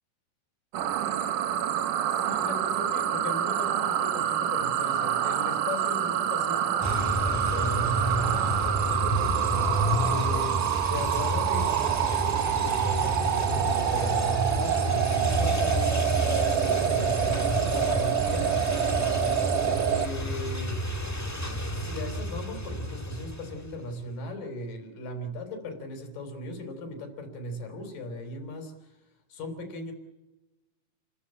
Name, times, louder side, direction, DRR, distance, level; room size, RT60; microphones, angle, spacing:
sound 1, 0.7-20.1, right 10 dB, 75° right, 2.4 m, -27 dB
voice 1, 2.2-8.6 10.0-18.7 19.9-20.8 21.7-29.0 29.3-29.9, equal, 80° left, 6 dB, 5.1 m, -37 dB
sound 2, 6.8-23.9, equal, 10° left, 1.0 m, -30 dB
30.0 x 14.5 x 8.6 m, 1.1 s
omnidirectional pair, 3.8 m